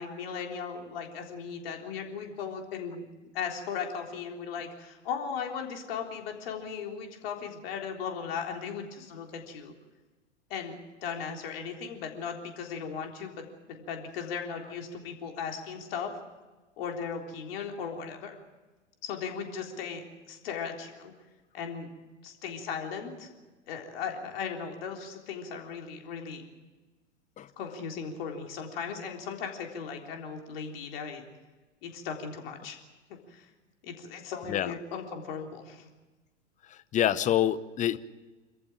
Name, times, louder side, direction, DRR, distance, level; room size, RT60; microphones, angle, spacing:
voice 1, 0.0-3.1 3.3-9.7 10.5-16.2 16.8-18.4 19.0-21.1 21.5-21.9 22.2-23.3 23.7-26.5 27.6-31.2 31.8-32.8 33.1-33.5 33.8-35.9, left 6 dB, 50° left, 2 dB, 3.8 m, -37 dB
voice 2, 36.9-38.0, left 11 dB, 20° left, 17 dB, 0.8 m, -26 dB
26.5 x 14.5 x 9.0 m, 1.2 s
figure-of-eight pair, 95°, 37 cm